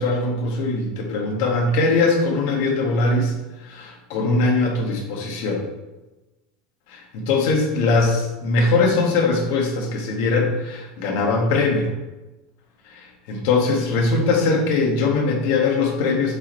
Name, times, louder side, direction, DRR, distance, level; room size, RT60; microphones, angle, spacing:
voice 1, 0.0-3.3 3.6-5.6 6.9-11.9 12.9-16.4, left 3 dB, 70° left, 1 dB, 1.4 m, -21 dB
6.7 x 3.3 x 4.4 m, 1.1 s
supercardioid pair, 135°, 0 cm